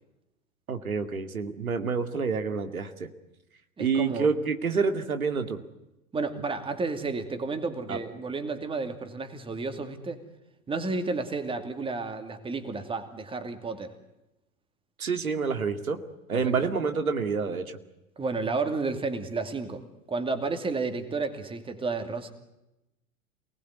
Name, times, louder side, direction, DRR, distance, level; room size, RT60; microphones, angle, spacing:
voice 1, 0.7-3.1 3.8-5.6 7.9-8.0 15.0-16.0 16.3-17.8, right 5 dB, 75° right, 7 dB, 2.3 m, -28 dB
voice 2, 3.8-4.3 6.1-10.2 10.7-13.9 16.3-16.5 18.2-19.8 20.1-22.3, right 3 dB, 10° right, 8 dB, 2.5 m, -31 dB
28.0 x 20.0 x 9.6 m, 0.94 s
figure-of-eight pair, 95°, 43 cm